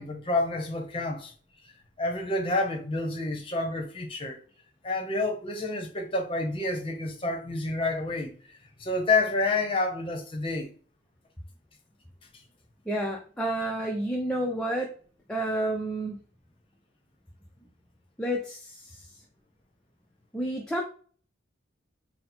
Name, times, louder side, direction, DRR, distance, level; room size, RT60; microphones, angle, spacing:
voice 1, 0.0-1.3 2.0-4.4 4.8-10.7, left 2 dB, 30° left, 0.8 m, -29 dB
voice 2, 12.9-14.9 15.3-16.2 18.2-19.1 20.3-20.8, right 1 dB, 5° left, 0.4 m, -30 dB
4.0 x 2.1 x 4.3 m
head